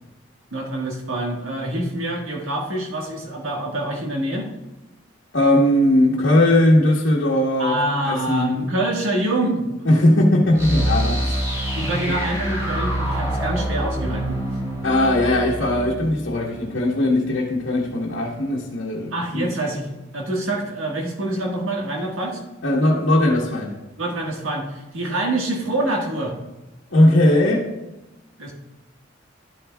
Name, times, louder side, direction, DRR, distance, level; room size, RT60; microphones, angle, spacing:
voice 1, 0.5-4.5 7.6-10.0 11.7-14.4 19.1-19.9 20.1-22.4 24.0-26.3 28.4-28.5, right 1 dB, 85° right, 0 dB, 1.5 m, -26 dB
voice 2, 5.3-7.8 8.0-8.6 9.8-11.4 14.8-19.5 22.6-23.7 26.9-27.6, left 1 dB, 70° left, -5 dB, 1.2 m, -18 dB
sound 1, 10.5-17.3, right 1 dB, 15° right, 2.9 m, -26 dB
12.0 x 7.8 x 2.3 m, 1.0 s
head